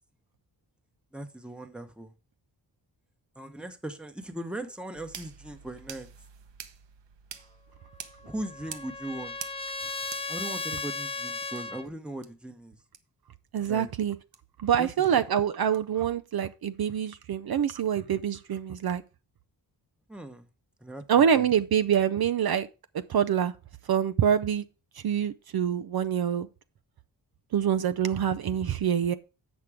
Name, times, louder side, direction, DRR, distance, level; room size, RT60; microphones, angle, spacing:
voice 1, 1.1-2.1 3.3-6.1 8.2-9.4 10.3-12.8 13.7-13.9 14.8-15.1 20.1-20.5 20.8-21.5, right 1 dB, ahead, 1.1 m, -39 dB
sound 1, 4.9-10.9 11.6-11.7 12.2-12.3 12.9-13.0 13.6-13.7 14.3-14.4 15.0-15.1 15.7-15.8, right 7 dB, 85° right, 1.1 m, -46 dB
Trumpet, 8.0-11.8, left 4 dB, 15° left, 0.4 m, -36 dB
voice 2, 13.5-14.2 14.6-19.0 21.1-22.7 23.1-23.5 23.9-24.6 25.0-26.5 27.5-29.1, right 8 dB, 60° right, 0.6 m, -25 dB
8.3 x 6.0 x 4.9 m
wide cardioid pair, 125°, 42 cm